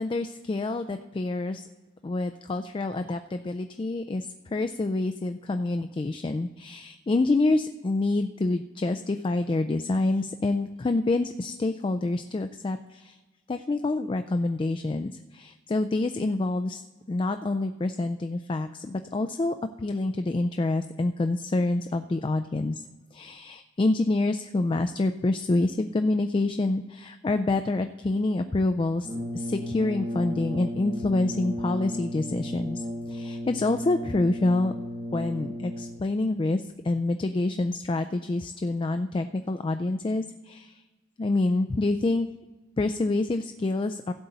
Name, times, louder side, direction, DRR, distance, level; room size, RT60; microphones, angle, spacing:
voice 1, 0.0-1.6 2.0-13.2 13.5-16.8 17.1-22.8 23.1-29.1 29.3-34.7 35.1-40.8 41.2-42.3 42.8-44.1, left 2 dB, 25° left, 8 dB, 0.3 m, -27 dB
Brass instrument, 29.0-36.2, equal, 25° right, 0.8 m, -34 dB
16.0 x 7.9 x 4.0 m, 1.2 s
head